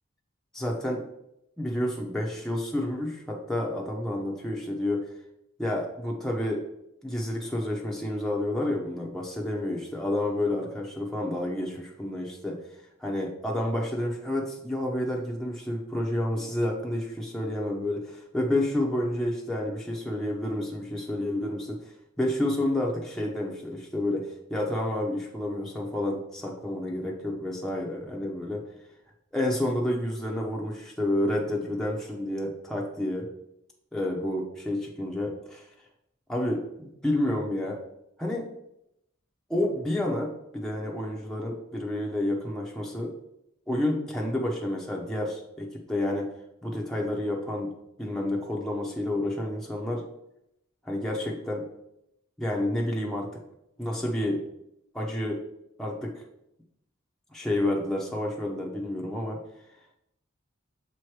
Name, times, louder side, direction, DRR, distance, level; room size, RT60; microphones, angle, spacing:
voice 1, 0.5-1.0 1.6-5.1 5.6-6.6 7.0-12.6 13.0-21.8 22.2-28.6 29.3-33.3 33.9-35.7 36.3-37.8 38.2-38.5 39.5-43.1 43.7-46.3 46.6-47.7 48.0-50.0 50.8-51.6 52.4-53.3 53.8-54.4 54.9-55.4 55.8-56.2 57.3-59.4, left 1 dB, 5° left, -2 dB, 0.8 m, -29 dB
6.9 x 3.1 x 4.7 m, 0.81 s
head